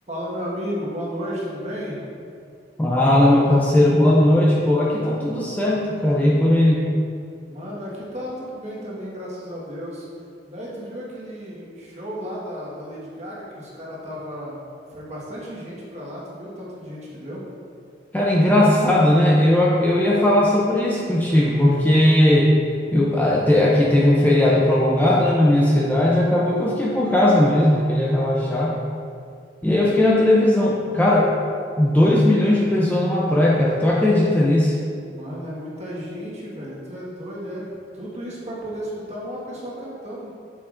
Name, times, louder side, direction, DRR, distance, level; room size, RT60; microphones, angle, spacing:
voice 1, 0.1-2.0 7.5-10.1 10.4-17.4 35.1-40.3, equal, 40° right, -6 dB, 1.5 m, -33 dB
voice 2, 2.8-6.9 18.1-22.5 22.9-28.7 29.6-31.3 31.8-34.8, left 1 dB, 10° left, -5 dB, 0.5 m, -18 dB
7.2 x 6.9 x 2.6 m, 2.4 s
head